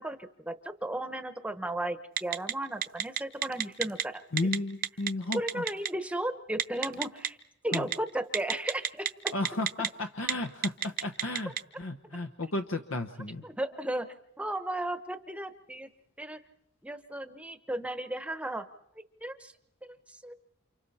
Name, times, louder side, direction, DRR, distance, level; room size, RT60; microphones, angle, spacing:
voice 1, 0.0-4.2 5.3-7.4 7.6-9.3 13.4-15.9 16.2-16.4 16.8-18.7 19.2-19.5 20.1-20.3, right 1 dB, 5° right, 10 dB, 1.0 m, -35 dB
Telephone, 2.2-2.5 2.8-4.0 4.4-4.6 4.8-5.9 6.6-7.3 7.7-7.9 8.3-9.9 10.2-10.3 10.6-11.6, right 9 dB, 45° right, 0.9 m, -28 dB
voice 2, 4.3-5.6 7.7-7.9 9.3-13.4, left 2 dB, 70° left, 7 dB, 1.0 m, -33 dB
30.0 x 27.5 x 4.3 m, 0.84 s
head